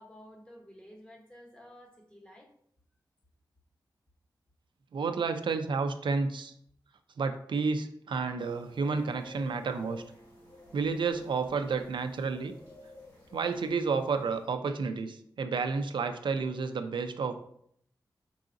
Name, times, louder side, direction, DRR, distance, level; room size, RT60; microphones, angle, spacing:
voice 1, 0.0-2.5, equal, 10° left, 0 dB, 0.9 m, -52 dB
voice 2, 4.9-6.5 7.2-10.0 10.7-12.5 13.3-17.3, right 4 dB, 80° right, 7 dB, 0.4 m, -31 dB
sound 1, 8.4-14.5, left 2 dB, 40° left, 1.9 m, -52 dB
4.7 x 3.8 x 2.5 m, 0.67 s
wide cardioid pair, 130°, 8 cm